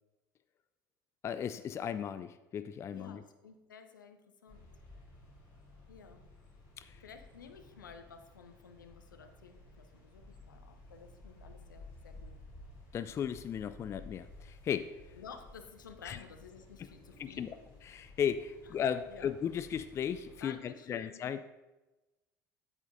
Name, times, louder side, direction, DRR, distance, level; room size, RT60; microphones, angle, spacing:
voice 1, 1.2-3.2 6.8-7.0 12.9-14.9 16.0-16.2 17.2-21.5, left 8 dB, 25° left, 13 dB, 0.3 m, -36 dB
voice 2, 2.9-4.7 5.9-6.2 7.0-12.4 15.1-17.6 18.6-18.7 19.1-19.3 20.4-21.2, left 6 dB, 75° left, 7 dB, 0.7 m, -53 dB
sound 1, 4.5-20.5, left 2 dB, 55° left, 2.9 m, -55 dB
8.7 x 8.4 x 2.6 m, 1.1 s
figure-of-eight pair, 65°, 11 cm